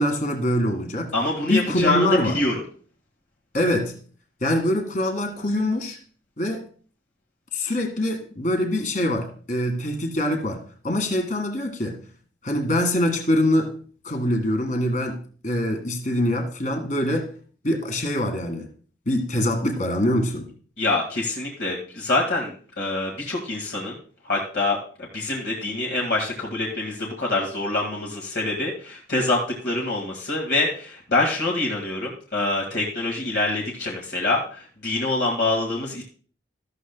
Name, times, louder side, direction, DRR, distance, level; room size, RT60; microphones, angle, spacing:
voice 1, 0.0-1.1 1.5-2.4 3.5-3.9 4.4-6.0 6.4-6.6 7.5-12.0 12.4-13.7 14.0-17.3 17.6-18.7 19.1-20.5, left 1 dB, 50° left, 5 dB, 1.8 m, -24 dB
voice 2, 1.1-2.6 20.8-24.0 24.3-24.8 25.1-36.0, left 2 dB, 65° left, -1 dB, 1.8 m, -25 dB
13.5 x 12.5 x 2.2 m, 0.43 s
head